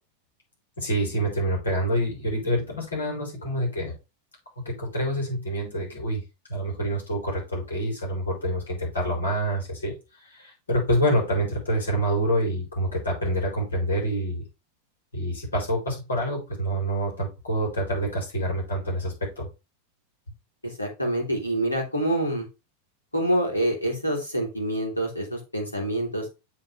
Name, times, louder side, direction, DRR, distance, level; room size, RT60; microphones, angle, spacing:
voice 1, 0.8-3.9 4.6-6.2 6.5-9.9 10.3-14.4 15.1-19.5, right 1 dB, 70° left, -2 dB, 4.4 m, -27 dB
voice 2, 20.6-22.5 23.1-26.3, right 1 dB, 85° left, 0 dB, 3.1 m, -26 dB
7.5 x 4.2 x 4.9 m, 0.26 s
figure-of-eight pair, 90°, 0 cm